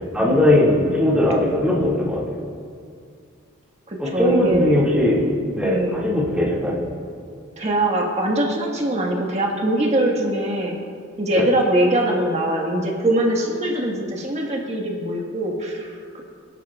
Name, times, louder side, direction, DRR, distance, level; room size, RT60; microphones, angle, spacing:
voice 1, 0.1-2.2 4.0-5.3 5.6-6.8 11.4-11.5, left 1 dB, 5° right, -6 dB, 2.2 m, -19 dB
voice 2, 3.9-4.8 5.6-6.0 7.6-10.8 11.2-16.2, right 1 dB, 30° right, -1 dB, 1.6 m, -22 dB
21.5 x 11.5 x 2.4 m, 2.3 s
head